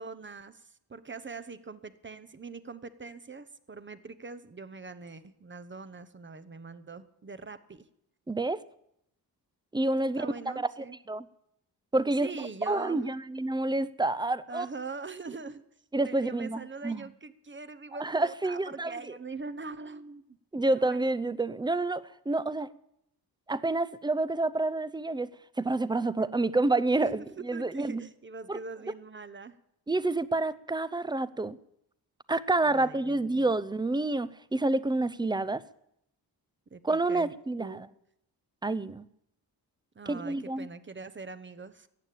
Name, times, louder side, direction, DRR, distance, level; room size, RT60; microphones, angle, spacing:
voice 1, 0.0-7.8 10.1-11.0 12.2-13.0 14.5-15.6 16.0-20.4 20.7-21.0 27.0-29.6 32.7-33.6 36.7-37.8 39.9-41.9, right 4 dB, 30° right, 0.9 m, -43 dB
voice 2, 8.3-8.6 9.7-10.7 11.1-11.3 11.9-14.7 15.9-17.1 18.0-18.9 20.5-22.7 23.5-25.3 25.6-28.0 28.5-28.6 29.9-31.6 32.3-35.6 36.8-37.9 38.6-39.1 40.1-40.7, right 2 dB, 10° right, 0.6 m, -28 dB
14.5 x 8.7 x 8.5 m
cardioid pair, 80°, 41 cm